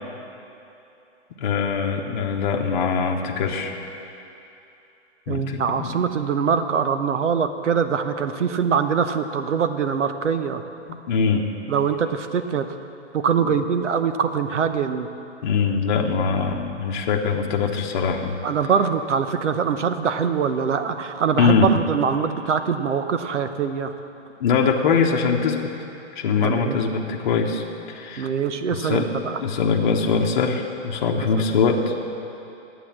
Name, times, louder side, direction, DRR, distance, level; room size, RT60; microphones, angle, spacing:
voice 1, 1.4-3.8 5.3-6.3 10.9-11.5 13.4-13.6 15.4-18.4 21.4-21.7 24.4-25.7 26.1-28.3 28.7-29.1 29.4-31.9, left 5 dB, 40° left, 1 dB, 1.0 m, -22 dB
voice 2, 5.3-10.6 11.7-12.7 13.1-15.1 18.4-23.9 26.4-26.8 28.2-29.4 31.2-31.4, right 6 dB, 75° right, 9 dB, 0.9 m, -23 dB
10.0 x 8.2 x 7.4 m, 2.9 s
hypercardioid pair, 150°, 36 cm